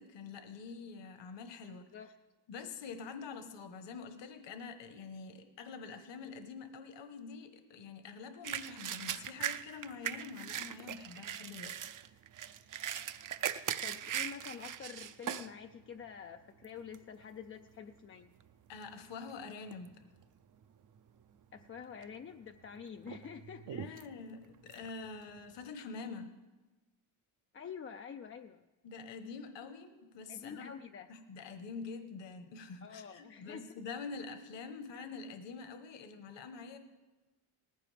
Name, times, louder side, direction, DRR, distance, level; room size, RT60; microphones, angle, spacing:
voice 1, 0.0-1.9 2.5-11.9 18.7-20.0 23.6-26.3 28.8-30.7 31.1-36.8, left 5 dB, 65° left, 8 dB, 1.3 m, -46 dB
sound 1, 8.4-15.5 16.0-16.1 16.6-17.0 17.7-17.9 18.2-19.4 19.7-20.2 20.6-20.7 21.6-22.2 22.5-25.6, right 9 dB, 40° right, 0.6 m, -40 dB
voice 2, 13.8-18.3 21.5-24.0 27.5-28.6 30.3-31.1 32.8-33.8, left 7 dB, 30° left, 6 dB, 0.3 m, -47 dB
19.0 x 15.0 x 3.4 m, 1.2 s
cardioid pair, 135°, 48 cm